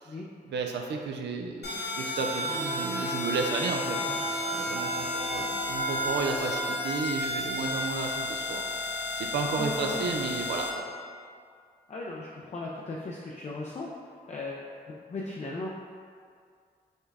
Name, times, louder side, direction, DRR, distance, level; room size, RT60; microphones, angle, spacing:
voice 1, 0.5-4.2 4.5-8.6 9.2-10.8, right 4 dB, 85° right, 2 dB, 0.4 m, -33 dB
sound 1, 1.6-10.7, left 1 dB, 75° left, 0.8 m, -32 dB
Wind instrument woodwind instrument, 2.4-6.9, equal, 10° right, 1.0 m, -37 dB
voice 2, 9.5-10.1 11.9-13.9 14.3-15.7, left 2 dB, 40° left, -3 dB, 0.5 m, -37 dB
5.4 x 2.3 x 3.3 m, 2.1 s
cardioid pair, 55°, 17 cm